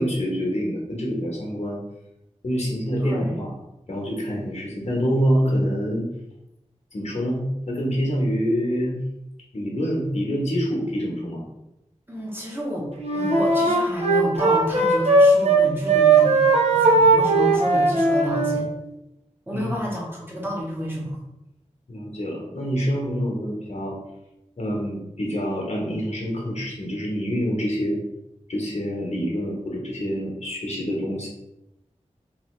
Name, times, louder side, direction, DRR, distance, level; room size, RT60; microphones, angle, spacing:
voice 1, 0.0-1.8 2.4-3.5 3.9-6.1 6.9-9.0 9.5-11.4 19.5-19.9 21.9-24.0 24.6-28.0 28.5-31.3, equal, 65° left, -3 dB, 1.1 m, -26 dB
voice 2, 3.0-3.4 12.1-16.4 16.7-18.7 19.5-21.2, equal, 20° right, -4 dB, 1.1 m, -30 dB
Wind instrument woodwind instrument, 13.0-15.6 15.9-18.6, right 3 dB, 55° right, 0.8 m, -18 dB
3.3 x 2.7 x 3.2 m, 0.89 s
wide cardioid pair, 65°, 12 cm